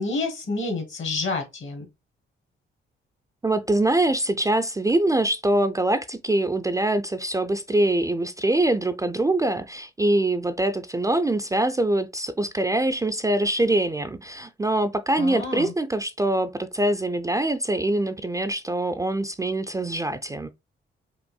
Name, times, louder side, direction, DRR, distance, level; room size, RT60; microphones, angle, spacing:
voice 1, 0.0-1.9 15.2-15.7, left 3 dB, 65° left, 1.5 m, -29 dB
voice 2, 3.4-20.5, right 1 dB, 15° right, 0.4 m, -24 dB
5.3 x 2.5 x 2.2 m
cardioid pair, 70°, 21 cm